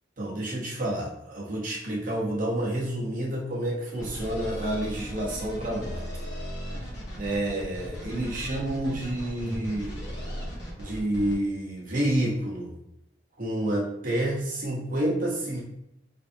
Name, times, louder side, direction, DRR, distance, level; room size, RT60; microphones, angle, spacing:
voice 1, 0.2-6.2 7.2-9.9 10.8-12.7 13.4-15.6, right 1 dB, 45° right, -4 dB, 1.1 m, -29 dB
sound 1, 4.0-11.3, equal, 60° left, 1.5 m, -37 dB
4.5 x 3.4 x 2.7 m, 0.81 s
head